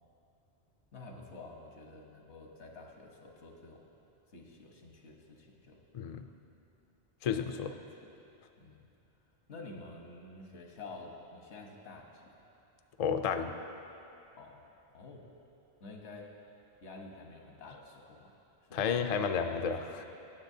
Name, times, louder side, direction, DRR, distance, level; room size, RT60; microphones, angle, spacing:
voice 1, 0.9-3.8 4.3-5.8 7.5-8.1 8.6-8.9 9.5-12.4 14.3-14.6 14.9-15.3 15.8-16.4 16.8-18.9 19.4-20.0, left 3 dB, 85° left, 1 dB, 1.3 m, -50 dB
voice 2, 5.9-6.3 7.2-7.7 13.0-13.5 18.7-20.0, left 6 dB, 60° left, 7 dB, 0.4 m, -32 dB
18.0 x 6.8 x 2.7 m, 2.8 s
omnidirectional pair, 1.1 m